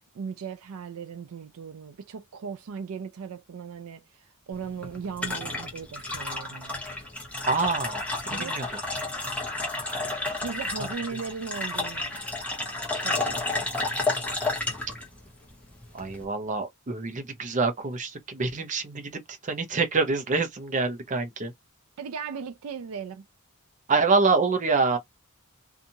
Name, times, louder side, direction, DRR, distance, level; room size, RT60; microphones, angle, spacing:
voice 1, 0.0-4.0 4.5-6.8 8.3-8.6 10.4-12.2 12.9-13.7 22.0-23.2, right 6 dB, 80° right, 0.4 m, -37 dB
sound 1, 4.5-16.2, left 2 dB, 5° left, 0.9 m, -31 dB
voice 2, 7.5-8.6 10.8-10.9 15.9-21.5 23.9-25.0, right 4 dB, 35° right, 0.7 m, -26 dB
2.7 x 2.4 x 2.7 m
head